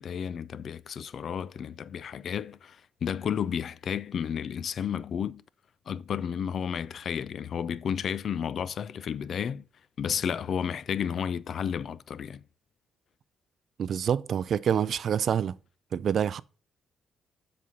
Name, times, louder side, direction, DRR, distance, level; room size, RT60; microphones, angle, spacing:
voice 1, 0.0-5.4 5.9-9.6 10.0-12.4, left 8 dB, 60° left, 0.4 m, -32 dB
voice 2, 13.8-15.6 15.9-16.4, right 8 dB, 60° right, 0.3 m, -27 dB
7.5 x 4.1 x 5.3 m
cardioid pair, 90°, 0 cm